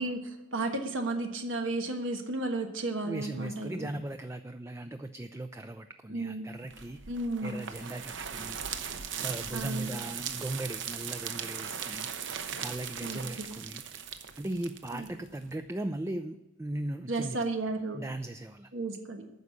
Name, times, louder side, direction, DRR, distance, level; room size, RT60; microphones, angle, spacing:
voice 1, 0.0-3.9 6.1-6.5 7.1-7.6 9.5-10.0 13.0-13.6 14.9-15.1 17.1-18.0 18.7-19.2, right 2 dB, 85° right, 4 dB, 1.3 m, -33 dB
voice 2, 3.0-7.0 7.4-8.6 9.2-12.1 12.6-13.8 14.4-17.4 17.9-18.7, right 1 dB, 15° right, 8 dB, 0.4 m, -38 dB
sound 1, 6.7-15.5, right 7 dB, 70° right, 0.9 m, -39 dB
9.5 x 6.1 x 8.4 m, 1.0 s
head